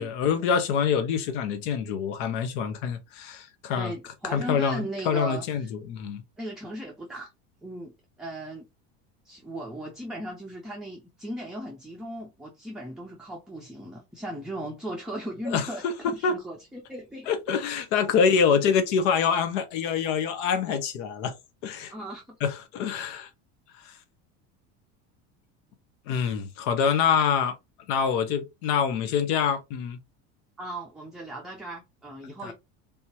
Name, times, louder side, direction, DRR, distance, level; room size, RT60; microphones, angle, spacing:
voice 1, 0.0-3.9 4.3-6.2 15.5-15.7 16.2-16.4 17.3-21.3 21.6-21.9 22.4-23.3 23.8-23.9 26.1-27.5 27.9-30.0 32.4-32.5, left 6 dB, 70° left, 0.9 m, -25 dB
voice 2, 3.7-5.7 6.4-7.3 7.6-7.9 8.2-8.7 9.2-17.3 21.9-22.4 30.6-32.5, right 1 dB, ahead, 0.5 m, -37 dB
3.5 x 2.9 x 2.8 m
supercardioid pair, 130°, 37 cm